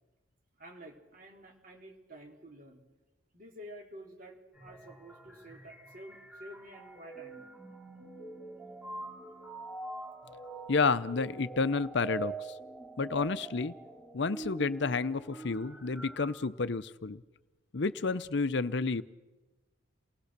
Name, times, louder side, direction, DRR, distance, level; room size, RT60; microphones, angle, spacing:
voice 1, 0.6-2.8 3.3-7.4, right 1 dB, 40° right, 1 dB, 4.2 m, -50 dB
sound 1, 4.5-16.3, right 3 dB, 5° right, 4.3 m, -44 dB
voice 2, 10.7-12.5 13.0-13.7 14.1-17.2 17.7-19.0, left 4 dB, 55° left, 15 dB, 0.6 m, -30 dB
28.5 x 19.0 x 6.7 m, 1.2 s
head